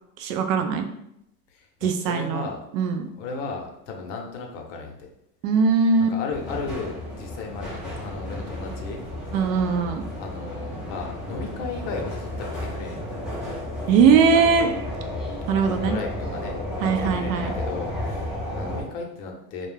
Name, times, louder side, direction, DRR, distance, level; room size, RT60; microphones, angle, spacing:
voice 1, 0.2-0.9 1.8-2.5 2.7-3.1 5.4-6.2 9.3-10.0 13.9-14.7 15.5-16.0 16.8-17.5, right 5 dB, 55° right, 6 dB, 0.5 m, -20 dB
voice 2, 1.5-2.6 3.2-5.0 6.1-7.7 8.0-9.4 10.2-13.0 14.3-14.7 15.6-19.7, left 4 dB, 50° left, 2 dB, 0.7 m, -35 dB
sound 1, 6.3-18.8, left 1 dB, ahead, 0.5 m, -32 dB
2.3 x 2.1 x 3.2 m, 0.80 s
hypercardioid pair, 100°, 48 cm